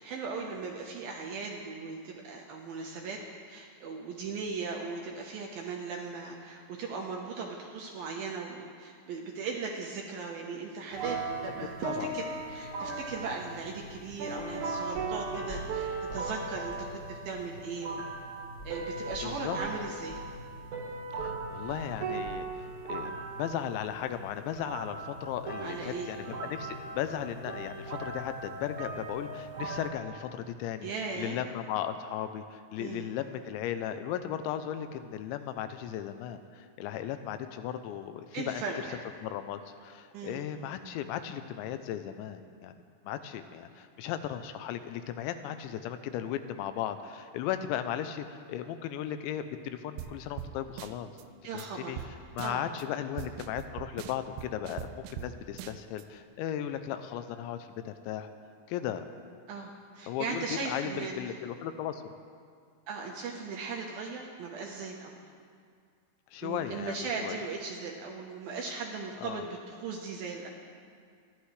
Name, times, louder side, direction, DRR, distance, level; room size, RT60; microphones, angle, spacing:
voice 1, 0.0-3.2 3.5-18.1 18.6-20.2 25.6-26.2 30.8-31.4 32.8-33.1 38.3-39.0 40.1-40.4 51.4-52.1 52.4-52.6 59.5-61.4 62.9-65.2 66.4-70.5, right 4 dB, 70° right, -1 dB, 2.4 m, -38 dB
sound 1, 10.9-29.9, right 3 dB, 55° right, 2.4 m, -38 dB
sound 2, 14.4-14.6 14.9-16.4 16.7-16.9 17.3-17.5 18.6-22.6 22.9-23.1 23.5-23.6, right 1 dB, 35° left, 1.9 m, -47 dB
voice 2, 19.2-19.6 21.1-30.9 31.2-38.6 39.2-51.1 51.5-52.0 52.3-58.3 58.7-59.0 60.1-62.1 66.3-67.0 67.2-67.4 69.2-69.5, left 10 dB, 85° left, 9 dB, 2.9 m, -36 dB
sound 3, 50.0-50.1 50.4-50.5 50.8-51.2 51.6-51.7 52.0-52.1 52.4-52.8 53.2-55.3 55.6-56.0, right 11 dB, 90° right, 2.3 m, -41 dB
27.0 x 11.5 x 3.3 m, 2.1 s
omnidirectional pair, 5.3 m